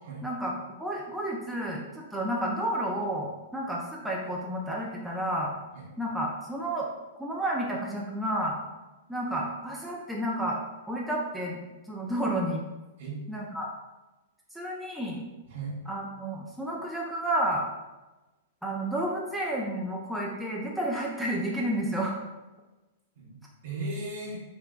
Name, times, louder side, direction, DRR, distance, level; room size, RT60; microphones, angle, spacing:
voice 1, 0.2-0.5 0.8-5.5 6.0-6.9 7.2-8.6 9.1-10.6 10.9-11.6 11.9-12.6 13.3-13.7 14.5-15.2 15.9-17.6 18.6-22.2, right 1 dB, 5° right, -4 dB, 0.4 m, -31 dB
voice 2, 15.4-15.8 23.2-24.4, right 2 dB, 55° right, -3 dB, 0.9 m, -37 dB
3.8 x 2.1 x 2.2 m, 1.1 s
figure-of-eight pair, 105°, 0 cm